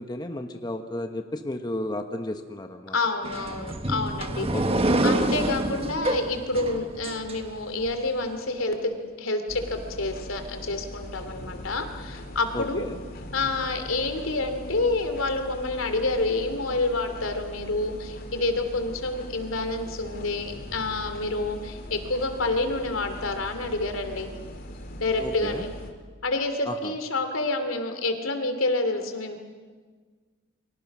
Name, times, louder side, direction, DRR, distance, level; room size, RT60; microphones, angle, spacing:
voice 1, 0.0-3.0 4.5-4.9 12.5-13.0 25.2-25.6 26.7-26.9, left 1 dB, 20° left, 5 dB, 1.2 m, -33 dB
voice 2, 2.9-4.5 5.0-12.8 13.3-24.3 25.0-25.7 26.2-29.4, left 2 dB, 85° left, 7 dB, 2.9 m, -28 dB
sound 1, 3.2-7.9, right 1 dB, 30° right, 1.5 m, -27 dB
sound 2, 9.5-25.9, equal, 50° left, 2.6 m, -41 dB
30.0 x 24.0 x 6.2 m, 1.5 s
head